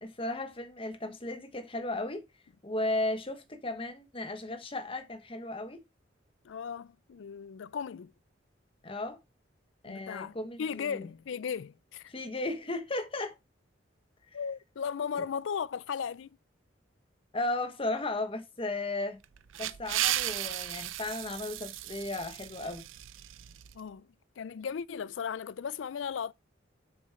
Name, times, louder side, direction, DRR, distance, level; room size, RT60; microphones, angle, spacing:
voice 1, 0.0-2.2 2.6-5.8 8.8-9.2 9.8-11.1 12.1-13.3 17.3-19.2 19.6-22.8, left 2 dB, 30° left, 1.2 m, -35 dB
voice 2, 6.4-8.1 9.9-12.1 14.3-16.4 23.7-24.1 24.4-26.3, left 7 dB, 75° left, 0.4 m, -36 dB
sound 1, 19.2-23.8, right 13 dB, 85° right, 0.5 m, -35 dB
6.9 x 6.1 x 3.6 m
head